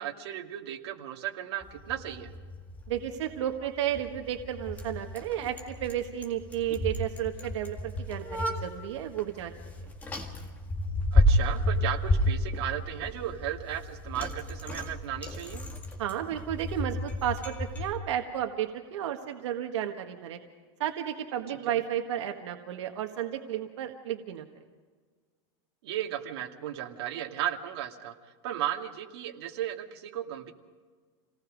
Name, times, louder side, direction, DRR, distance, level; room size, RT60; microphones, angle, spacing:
voice 1, 0.0-2.3 11.1-15.6 21.6-21.8 25.8-28.1 28.4-30.5, right 11 dB, 65° right, 2 dB, 2.3 m, -35 dB
Bicycle, 1.6-17.9, left 1 dB, 10° left, 1.9 m, -31 dB
voice 2, 2.9-9.5 16.0-20.4 20.8-24.5, right 10 dB, 90° right, 4 dB, 1.6 m, -32 dB
28.5 x 18.5 x 5.2 m, 1.5 s
supercardioid pair, 175°, 15 cm